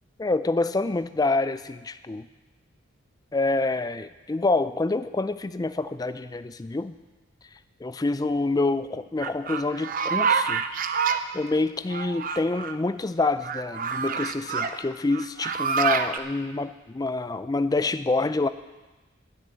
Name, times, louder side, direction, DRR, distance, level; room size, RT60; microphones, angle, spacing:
voice 1, 0.2-2.3 3.3-7.0 7.8-10.6 11.3-18.5, left 3 dB, 20° left, 12 dB, 0.3 m, -27 dB
sound 1, 9.2-11.2 11.9-12.8 13.4-14.7 15.1-16.2, right 6 dB, 45° right, 0.5 m, -27 dB
12.0 x 6.4 x 8.5 m, 1.2 s
head